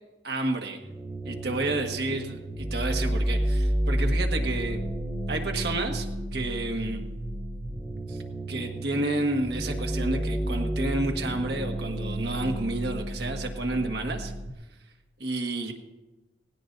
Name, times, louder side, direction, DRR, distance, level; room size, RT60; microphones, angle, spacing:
voice 1, 0.2-0.8 1.2-4.8 5.3-6.1 6.3-7.0 8.1-8.2 8.5-14.3 15.2-15.7, right 2 dB, 60° right, 3 dB, 1.6 m, -30 dB
sound 1, 0.8-14.5, right 1 dB, 15° right, 0.7 m, -31 dB
18.0 x 18.0 x 2.7 m, 1.1 s
head